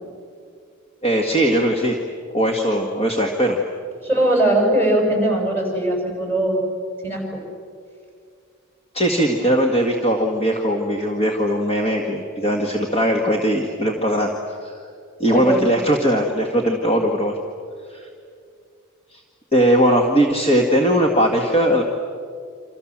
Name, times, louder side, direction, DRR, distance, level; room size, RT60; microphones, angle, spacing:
voice 1, 1.0-2.0 2.3-3.6 8.9-14.9 15.2-17.3 17.9-18.1 19.1-19.2 19.5-21.8, equal, 30° left, 2 dB, 2.0 m, -19 dB
voice 2, 4.0-6.6 7.0-7.4 15.3-15.6, right 1 dB, 10° left, 1 dB, 6.8 m, -20 dB
29.0 x 26.5 x 7.5 m, 2.3 s
head